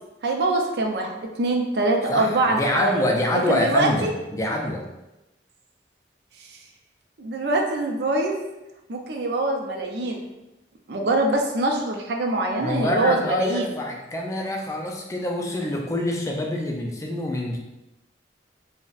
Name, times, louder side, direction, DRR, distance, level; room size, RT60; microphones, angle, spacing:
voice 1, 0.2-1.1 1.4-3.0 3.5-4.1 6.5-6.6 7.2-8.4 8.9-10.2 10.9-13.7, right 2 dB, 70° right, 1 dB, 0.5 m, -24 dB
voice 2, 2.1-4.8 12.6-17.6, left 1 dB, 15° left, 0 dB, 0.3 m, -26 dB
3.9 x 2.1 x 2.4 m, 0.97 s
head